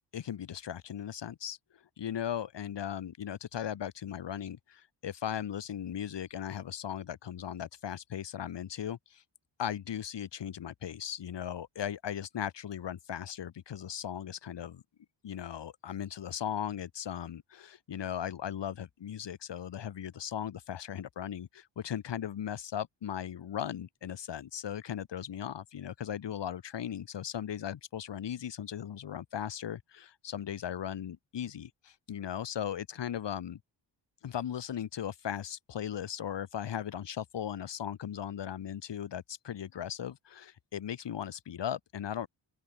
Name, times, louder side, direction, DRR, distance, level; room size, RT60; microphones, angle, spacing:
voice 1, 0.1-1.6 2.0-9.2 9.6-14.8 15.2-33.6 34.2-42.3, left 9 dB, 65° left, 1.3 m, -37 dB
open air
wide cardioid pair, 130°, 46 cm